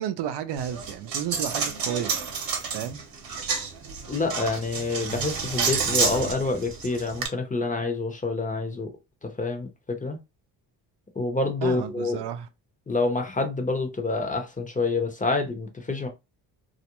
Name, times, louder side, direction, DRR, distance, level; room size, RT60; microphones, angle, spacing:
voice 1, 0.0-2.1 2.7-3.0 11.6-12.5, right 10 dB, 70° right, 0.5 m, -32 dB
Coin (dropping), 0.6-7.3, right 5 dB, 55° right, 0.9 m, -29 dB
voice 2, 4.1-8.9 9.2-10.2 11.2-12.2 12.9-16.1, left 3 dB, 20° left, 0.7 m, -27 dB
2.4 x 2.0 x 2.9 m
cardioid pair, 75°, 42 cm